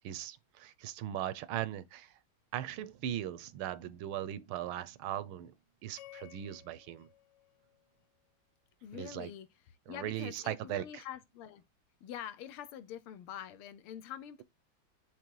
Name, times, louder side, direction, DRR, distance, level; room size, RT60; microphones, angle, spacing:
voice 1, 0.0-2.1 2.5-5.5 5.8-7.1 8.9-9.3 9.9-11.0, right 12 dB, 80° right, 1.5 m, -39 dB
sound 1, 6.0-8.3, left 15 dB, 75° left, 1.0 m, -56 dB
voice 2, 8.8-9.5 9.9-11.6 12.0-14.4, left 10 dB, 90° left, 1.7 m, -45 dB
6.7 x 3.1 x 4.6 m
omnidirectional pair, 2.3 m